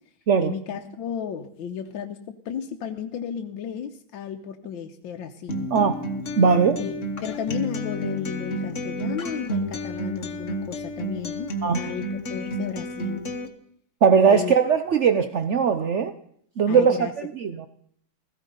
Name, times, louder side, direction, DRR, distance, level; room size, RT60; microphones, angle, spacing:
voice 1, 0.4-5.7 6.8-13.3 14.3-14.6 16.7-17.1, left 8 dB, 70° left, 5 dB, 1.6 m, -34 dB
Acoustic guitar, 5.5-13.5, equal, 40° left, 1.5 m, -31 dB
voice 2, 6.4-6.8 11.6-11.8 14.0-16.1 16.6-17.1 17.4-17.7, right 6 dB, 65° right, 9 dB, 0.7 m, -19 dB
16.5 x 15.5 x 5.4 m, 0.65 s
omnidirectional pair, 2.3 m